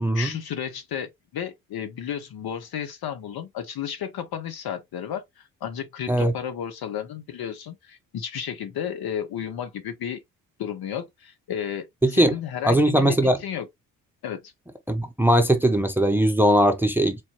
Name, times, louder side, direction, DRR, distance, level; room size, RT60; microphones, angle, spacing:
voice 1, 0.1-10.2 10.6-13.7 14.2-14.5, left 9 dB, 55° left, 1.2 m, -33 dB
voice 2, 12.0-12.3 12.6-13.4 14.9-17.2, right 1 dB, 5° right, 0.8 m, -20 dB
4.3 x 3.2 x 2.9 m
figure-of-eight pair, 45°, 46 cm